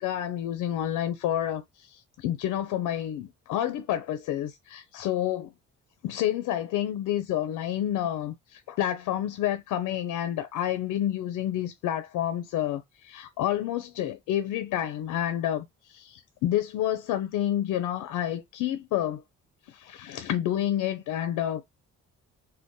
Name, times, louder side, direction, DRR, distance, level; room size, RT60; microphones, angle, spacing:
voice 1, 0.0-5.5 6.0-19.2 19.7-21.6, left 11 dB, 85° left, 0.5 m, -29 dB
2.6 x 2.2 x 3.5 m
cardioid pair, 90°, 30 cm